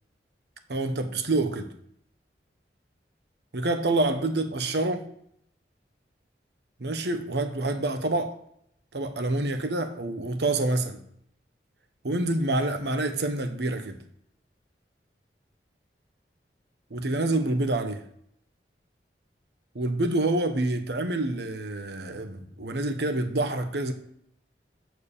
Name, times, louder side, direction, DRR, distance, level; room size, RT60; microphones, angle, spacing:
voice 1, 0.7-1.7 3.5-5.1 6.8-8.4 8.9-11.0 12.0-14.0 16.9-18.0 19.7-23.9, right 2 dB, 70° right, 1.0 m, -27 dB
8.9 x 4.7 x 6.7 m
head